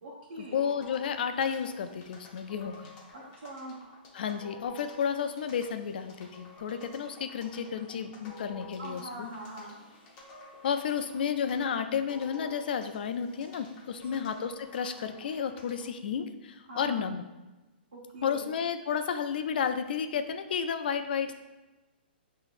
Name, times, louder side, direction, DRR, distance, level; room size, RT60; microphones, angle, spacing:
voice 1, 0.0-0.7 3.1-3.8 8.8-9.8 14.0-14.3 16.7-17.1 17.9-18.5, right 1 dB, 85° right, -8 dB, 1.1 m, -43 dB
voice 2, 0.5-2.9 4.1-9.3 10.6-17.2 18.2-21.3, left 7 dB, 60° left, 9 dB, 0.4 m, -32 dB
sound 1, 0.6-15.9, left 2 dB, 25° left, 0.8 m, -51 dB
5.6 x 3.0 x 2.5 m, 1.1 s
hypercardioid pair, 160°, 6 cm